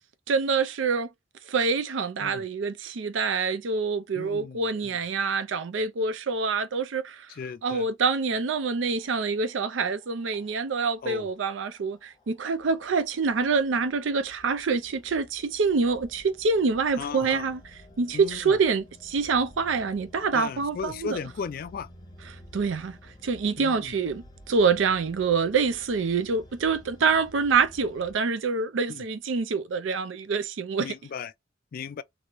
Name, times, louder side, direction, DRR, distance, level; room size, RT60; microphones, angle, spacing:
voice 1, 0.3-1.1 1.5-7.3 7.6-21.2 22.2-31.0, right 4 dB, 80° right, 0.5 m, -26 dB
voice 2, 4.1-4.6 7.3-7.9 11.0-11.3 17.0-17.5 18.1-18.6 20.3-21.9 23.6-23.9 28.9-29.0 30.8-31.3 31.7-32.0, left 6 dB, 50° left, 0.3 m, -36 dB
sound 1, 8.5-28.1, left 1 dB, 20° left, 0.8 m, -53 dB
3.0 x 2.7 x 2.9 m
head